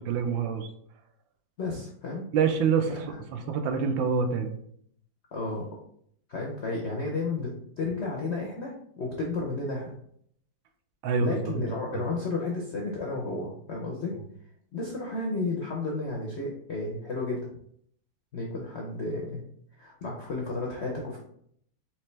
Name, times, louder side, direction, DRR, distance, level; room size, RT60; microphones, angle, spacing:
voice 1, 0.1-0.7 2.3-2.9 3.3-4.5 11.0-11.7, right 6 dB, 85° right, 6 dB, 1.4 m, -26 dB
voice 2, 1.6-2.3 2.9-3.2 5.3-5.7 6.3-9.9 11.2-14.1 14.7-17.5 18.3-19.4 19.8-21.2, left 3 dB, 70° left, -2 dB, 0.6 m, -32 dB
4.6 x 2.9 x 3.1 m, 0.68 s
omnidirectional pair, 2.0 m